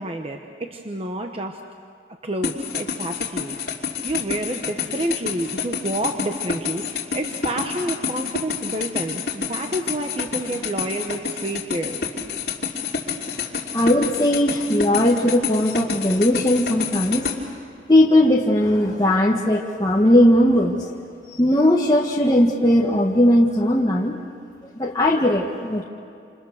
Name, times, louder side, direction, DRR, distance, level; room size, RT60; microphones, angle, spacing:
voice 1, 0.0-1.6 2.2-3.6 4.0-12.0, right 1 dB, 35° right, 4 dB, 1.1 m, -29 dB
sound 1, 2.4-17.4, left 6 dB, 60° left, 3.0 m, -28 dB
voice 2, 13.7-17.3 17.9-21.0 21.4-24.2 24.8-25.8, left 1 dB, 20° left, -2 dB, 1.4 m, -18 dB
28.5 x 28.5 x 6.6 m, 2.4 s
head